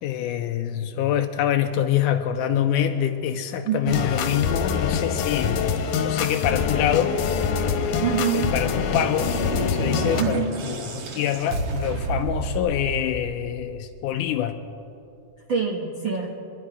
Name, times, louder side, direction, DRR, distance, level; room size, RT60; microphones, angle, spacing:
voice 1, 0.0-5.7 6.0-7.2 8.3-14.6, left 10 dB, 90° left, 6 dB, 1.8 m, -25 dB
voice 2, 3.7-4.0 8.0-8.5 10.2-10.6 15.5-16.4, right 7 dB, 85° right, -2 dB, 1.0 m, -25 dB
sound 1, 3.9-10.2, left 6 dB, 70° left, 2.3 m, -25 dB
sound 2, 8.6-14.0, right 3 dB, 60° right, 1.7 m, -31 dB
25.5 x 11.0 x 4.9 m, 2.8 s
omnidirectional pair, 4.2 m